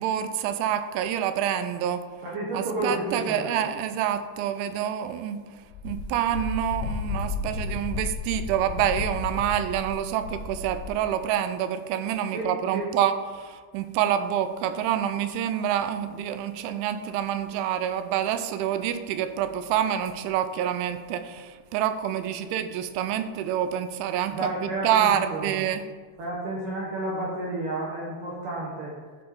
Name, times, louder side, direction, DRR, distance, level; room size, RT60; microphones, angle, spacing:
voice 1, 0.0-2.0 2.5-5.5 5.8-25.9, right 10 dB, 90° right, 10 dB, 3.0 m, -27 dB
voice 2, 2.2-3.6 12.3-12.9 24.3-25.6 26.2-28.9, right 2 dB, 70° right, -5 dB, 2.1 m, -31 dB
Wind, 5.7-11.0, left 4 dB, 80° left, 2.6 m, -33 dB
11.0 x 4.3 x 5.0 m, 1.5 s
omnidirectional pair, 5.3 m